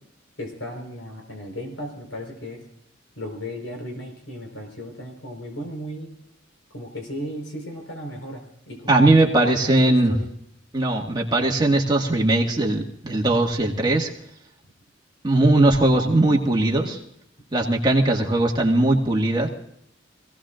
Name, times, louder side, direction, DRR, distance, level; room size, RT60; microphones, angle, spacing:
voice 1, 0.4-2.6 3.2-6.1 6.7-10.3, equal, 80° left, 2 dB, 4.6 m, -35 dB
voice 2, 8.9-10.1 10.7-14.1 15.2-17.0 17.5-19.5, right 2 dB, 20° right, 0 dB, 1.9 m, -19 dB
26.0 x 17.0 x 2.5 m, 0.72 s
head